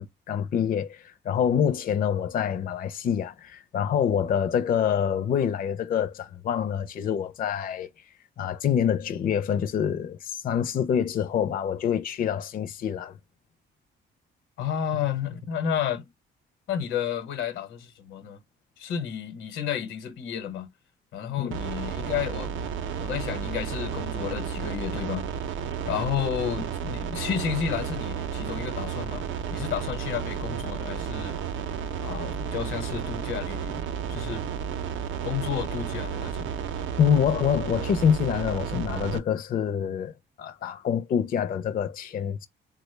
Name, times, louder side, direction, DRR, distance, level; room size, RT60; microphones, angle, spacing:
voice 1, 0.0-7.9 8.4-13.1 21.4-21.5 37.0-40.1 40.4-42.5, left 8 dB, 45° left, 0.4 m, -26 dB
voice 2, 14.6-16.1 16.7-18.4 18.8-20.7 21.1-22.7 23.0-25.3 25.9-29.3 29.5-31.4 32.0-33.8 34.1-34.5 35.2-36.5, left 8 dB, 85° left, 0.9 m, -31 dB
sound 1, 21.5-39.2, right 7 dB, 75° right, 0.6 m, -32 dB
3.5 x 2.1 x 3.2 m
cardioid pair, 90°, 20 cm